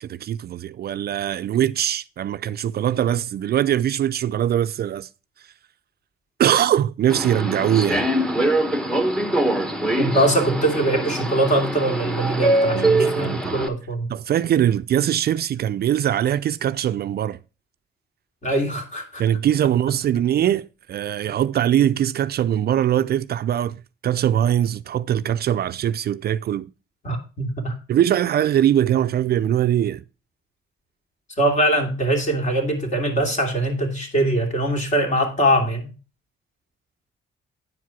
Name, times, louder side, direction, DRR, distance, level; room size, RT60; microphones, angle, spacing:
voice 1, 0.0-5.1 6.4-8.0 12.7-13.7 14.1-17.4 19.2-23.8 24.0-26.7 27.9-30.0, right 10 dB, 55° right, 0.4 m, -22 dB
Subway metro underground, 7.1-13.7, right 1 dB, 5° left, 1.1 m, -23 dB
voice 2, 10.0-14.1 18.4-19.2 27.0-27.7 31.4-35.9, right 1 dB, 35° left, 2.8 m, -22 dB
9.8 x 4.7 x 5.8 m
cardioid pair, 90°, 20 cm